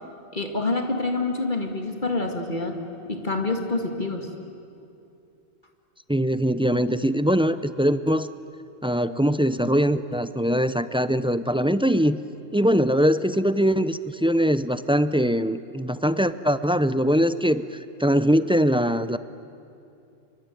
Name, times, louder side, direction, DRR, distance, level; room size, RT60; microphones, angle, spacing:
voice 1, 0.3-2.8 3.1-4.3, left 2 dB, 40° left, 3 dB, 2.2 m, -27 dB
voice 2, 6.1-8.3 8.8-12.2 12.5-19.2, equal, 10° right, 13 dB, 0.4 m, -22 dB
27.0 x 24.0 x 9.2 m, 2.6 s
omnidirectional pair, 1.2 m